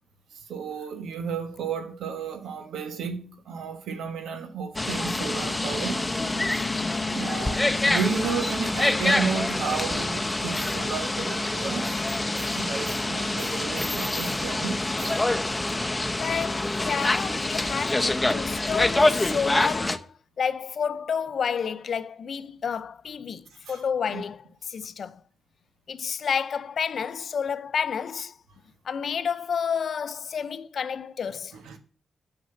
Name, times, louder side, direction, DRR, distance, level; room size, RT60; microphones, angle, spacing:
voice 1, 0.5-6.0 7.1-11.9 12.4-15.2 23.7-23.8 24.1-24.2 31.5-31.8, right 6 dB, 85° right, 1.2 m, -33 dB
sound 1, 4.8-20.0, left 2 dB, 20° left, 0.8 m, -26 dB
voice 2, 16.2-25.2 25.9-28.3 28.8-31.6, left 7 dB, 70° left, 0.6 m, -30 dB
6.6 x 6.3 x 7.0 m
supercardioid pair, 50°, 0 cm